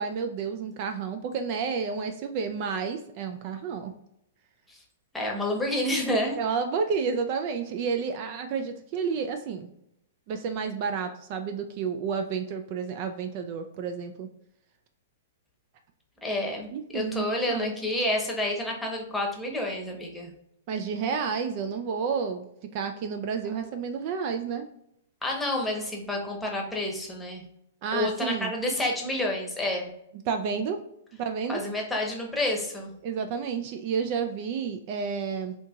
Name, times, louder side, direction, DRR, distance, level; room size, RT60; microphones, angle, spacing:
voice 1, 0.0-3.9 6.4-9.7 10.3-14.3 16.7-17.7 20.7-22.4 22.7-24.7 27.8-28.5 30.3-30.8 31.1-31.6 33.0-35.5, right 6 dB, 45° right, 7 dB, 0.4 m, -30 dB
voice 2, 5.1-6.4 16.2-20.3 25.2-27.4 27.9-29.9 31.5-32.9, left 1 dB, 5° left, 0 dB, 0.9 m, -29 dB
4.4 x 2.7 x 2.3 m, 0.79 s
hypercardioid pair, 130°, 0 cm